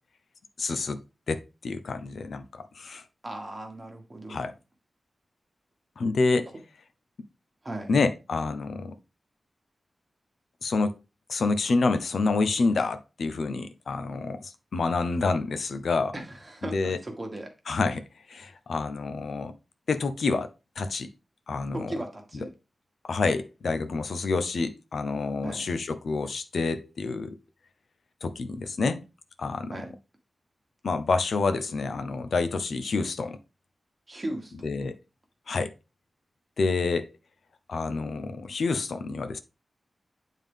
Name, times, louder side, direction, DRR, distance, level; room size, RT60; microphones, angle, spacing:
voice 1, 0.6-1.0 1.3-3.0 4.3-4.5 6.0-6.5 7.9-8.9 10.6-10.9 11.3-16.1 16.6-17.0 17.7-19.5 19.9-20.5 20.8-21.1 21.5-21.9 23.0-27.4 28.2-29.0 29.4-29.7 30.8-33.4 34.6-35.0 35.5-35.7 36.6-37.1 37.7-39.4, left 3 dB, 70° left, 0.6 m, -28 dB
voice 2, 3.2-4.5 7.6-7.9 16.1-17.5 21.7-22.5 25.4-25.6 29.7-29.9 34.1-34.5, right 1 dB, 25° right, 1.4 m, -37 dB
9.1 x 3.7 x 3.5 m
wide cardioid pair, 160°, 0 cm